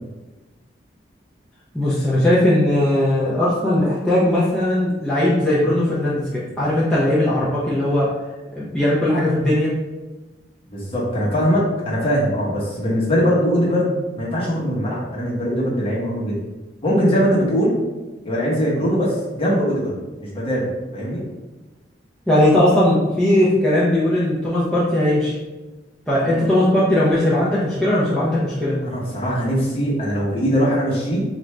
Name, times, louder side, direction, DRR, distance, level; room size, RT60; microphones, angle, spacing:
voice 1, 1.7-8.1 8.5-9.7 22.3-25.4 26.1-28.8, left 1 dB, 5° left, -9 dB, 0.6 m, -18 dB
voice 2, 10.7-16.4 16.8-17.7 18.2-19.9 20.2-21.2 26.3-26.4 28.8-31.2, equal, 30° left, -6 dB, 1.0 m, -21 dB
4.5 x 2.5 x 3.2 m, 1.2 s
head